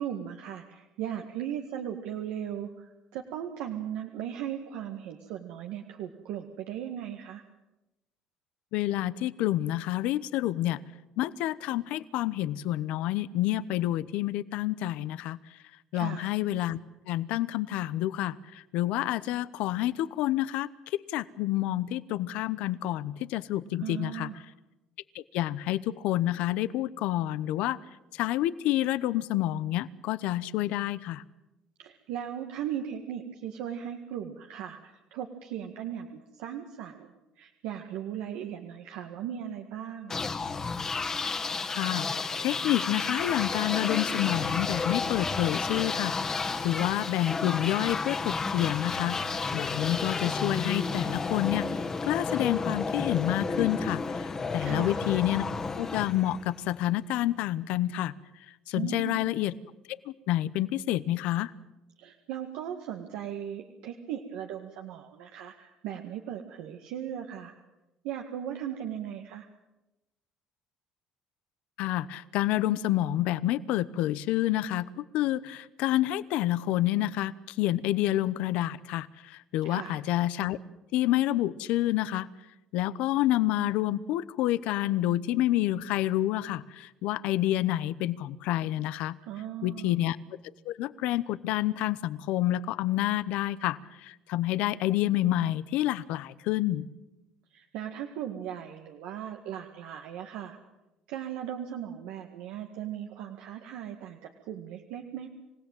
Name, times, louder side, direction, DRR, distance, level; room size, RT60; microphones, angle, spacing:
voice 1, 0.0-7.4 15.9-16.3 23.8-24.5 31.8-40.2 54.6-55.1 58.8-59.3 62.0-67.5 68.0-69.5 79.6-80.0 89.3-89.9 97.5-100.6 101.1-104.2 104.5-105.3, right 10 dB, 85° right, 3 dB, 1.9 m, -37 dB
voice 2, 8.7-10.8 11.2-15.4 15.9-16.8 17.1-24.3 25.1-27.8 28.1-31.2 41.7-49.2 49.5-51.7 52.0-55.4 55.8-58.1 58.7-59.5 59.9-60.0 60.3-61.5 71.8-80.6 80.9-82.3 82.7-89.2 89.6-90.2 90.7-96.9, left 14 dB, 75° left, 17 dB, 0.9 m, -28 dB
sound 1, 40.1-56.8, left 4 dB, 25° left, 1.8 m, -32 dB
27.0 x 17.0 x 9.0 m, 1.0 s
cardioid pair, 125°, 2 cm